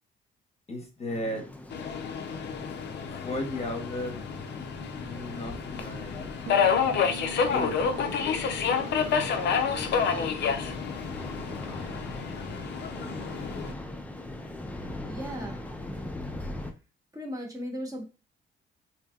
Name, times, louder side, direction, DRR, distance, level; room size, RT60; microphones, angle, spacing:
voice 1, 0.7-1.4 3.0-4.2 5.0-6.2 7.5-9.3 10.2-10.7, left 1 dB, 30° left, 2 dB, 0.9 m, -37 dB
sound 1, 1.1-16.7, left 1 dB, 5° left, 0.4 m, -40 dB
Subway metro underground, 1.7-13.7, left 6 dB, 60° left, 0.5 m, -29 dB
Bass guitar, 6.5-16.1, right 1 dB, 75° right, 0.4 m, -47 dB
voice 2, 15.0-15.6 17.1-18.0, equal, 15° right, 1 dB, 0.9 m, -36 dB
3.3 x 2.7 x 2.3 m, 0.31 s
cardioid pair, 90°, 20 cm